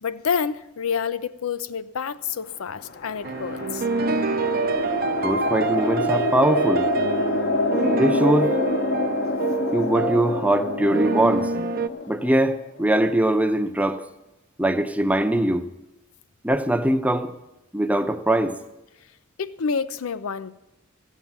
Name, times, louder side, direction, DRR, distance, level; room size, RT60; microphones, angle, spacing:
voice 1, 0.0-3.8 9.4-9.5 19.4-20.5, left 6 dB, 85° left, 0.5 m, -28 dB
sound 1, 2.6-13.0, left 2 dB, 50° left, 0.8 m, -27 dB
sound 2, 3.2-11.9, right 4 dB, 45° right, 0.6 m, -27 dB
voice 2, 5.2-6.9 7.9-8.6 9.7-11.5 12.1-14.0 14.6-15.7 16.4-17.3 17.7-18.6, right 1 dB, 5° right, 0.7 m, -21 dB
14.5 x 7.3 x 9.4 m
head